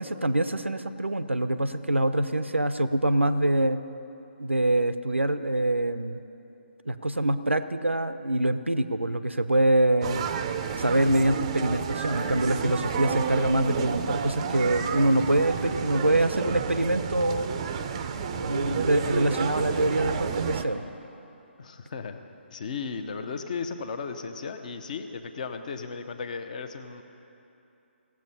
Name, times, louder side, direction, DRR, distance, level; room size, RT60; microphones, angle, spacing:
voice 1, 0.0-3.8 4.4-6.2 6.9-10.2 10.8-17.5 18.3-20.8, right 1 dB, 85° right, 12 dB, 0.6 m, -25 dB
sound 1, 10.0-20.6, right 6 dB, 25° right, 0.5 m, -31 dB
voice 2, 21.6-22.2 22.5-27.0, left 5 dB, 40° left, 8 dB, 0.8 m, -35 dB
16.5 x 7.6 x 5.5 m, 2.9 s
figure-of-eight pair, 140°, 6 cm